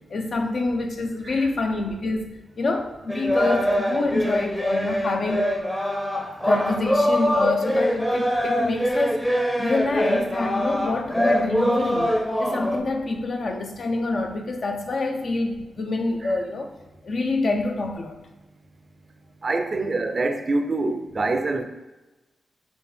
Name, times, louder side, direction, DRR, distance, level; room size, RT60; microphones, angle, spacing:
voice 1, 0.1-5.5 6.4-16.7 17.0-18.2, left 2 dB, 60° left, 4 dB, 0.5 m, -26 dB
sound 1, 3.1-12.8, equal, 10° left, 0.6 m, -24 dB
voice 2, 19.4-21.6, right 3 dB, 50° right, 6 dB, 0.4 m, -25 dB
4.0 x 2.4 x 3.4 m, 1.1 s
supercardioid pair, 50°, 0 cm